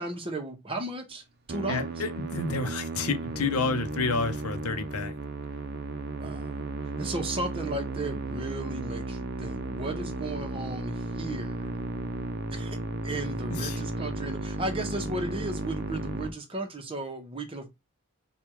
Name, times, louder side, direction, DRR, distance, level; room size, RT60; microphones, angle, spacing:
voice 1, 0.0-1.9 6.2-11.7 12.5-12.8 13.0-17.7, right 2 dB, 25° right, 1.0 m, -35 dB
Musical instrument, 1.5-16.3, right 2 dB, 45° right, 0.6 m, -34 dB
voice 2, 1.7-5.1 13.5-13.8, left 3 dB, 80° left, 0.7 m, -30 dB
3.5 x 2.4 x 4.4 m
head